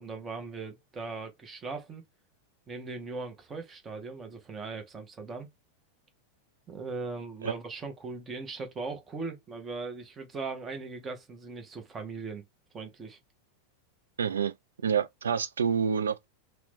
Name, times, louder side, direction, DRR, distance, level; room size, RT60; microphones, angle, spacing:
voice 1, 0.0-2.0 2.7-5.5 6.7-12.4 12.7-13.2, right 4 dB, 20° right, 0.7 m, -39 dB
voice 2, 14.2-14.5 14.8-16.2, right 7 dB, 70° right, 0.3 m, -28 dB
2.9 x 2.1 x 3.4 m
figure-of-eight pair, 90°, 0 cm